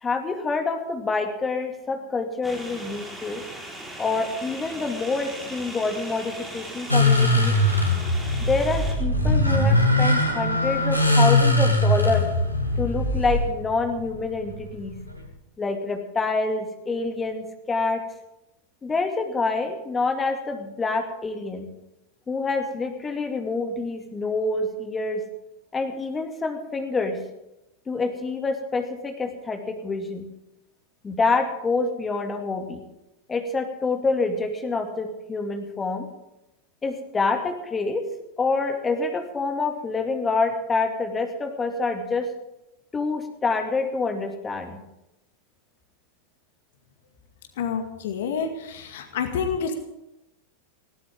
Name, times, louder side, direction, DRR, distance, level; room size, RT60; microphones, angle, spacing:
voice 1, 0.0-3.4 4.0-7.5 8.5-12.3 12.8-15.0 15.6-18.0 18.8-21.7 22.3-25.2 25.7-27.2 27.9-30.3 31.0-32.8 33.3-36.1 36.8-38.1 38.4-42.3 42.9-44.8, left 3 dB, 15° left, 5 dB, 2.3 m, -27 dB
sound 1, 2.4-8.9, right 1 dB, 5° right, 4.4 m, -38 dB
sound 2, 6.9-15.2, left 1 dB, 85° right, 2.8 m, -21 dB
voice 2, 47.6-49.7, left 6 dB, 55° left, 6 dB, 2.1 m, -28 dB
19.5 x 17.5 x 3.7 m, 0.89 s
figure-of-eight pair, 90°, 0 cm